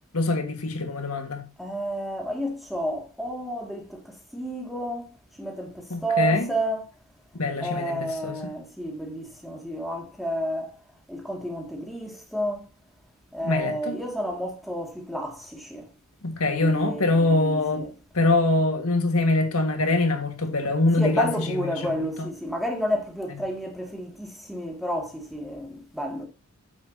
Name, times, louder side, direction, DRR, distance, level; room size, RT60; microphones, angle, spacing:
voice 1, 0.1-1.4 5.9-6.5 7.3-8.5 13.4-14.0 16.2-17.9 18.1-21.6 22.0-22.3, left 2 dB, 85° left, 1.8 m, -24 dB
voice 2, 1.6-6.9 7.6-10.8 11.1-12.7 13.3-15.9 16.5-17.9 21.0-26.2, equal, ahead, 2.3 m, -31 dB
9.3 x 7.4 x 2.8 m
head